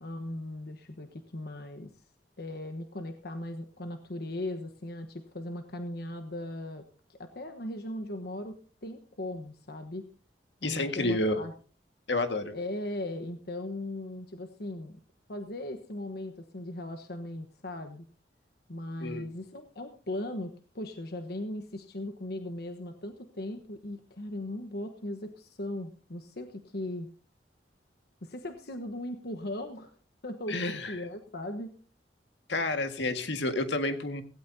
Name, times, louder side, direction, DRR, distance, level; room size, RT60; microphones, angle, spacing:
voice 1, 0.0-1.9 2.4-10.1 10.6-11.5 12.5-15.0 15.3-18.1 18.7-27.1 28.2-29.9 30.2-31.7, left 1 dB, 65° left, 7 dB, 1.2 m, -38 dB
voice 2, 10.6-11.4 12.1-12.5 19.0-19.3 30.5-31.0 32.5-34.2, left 2 dB, 85° left, 7 dB, 1.8 m, -30 dB
17.0 x 16.5 x 2.8 m, 0.37 s
head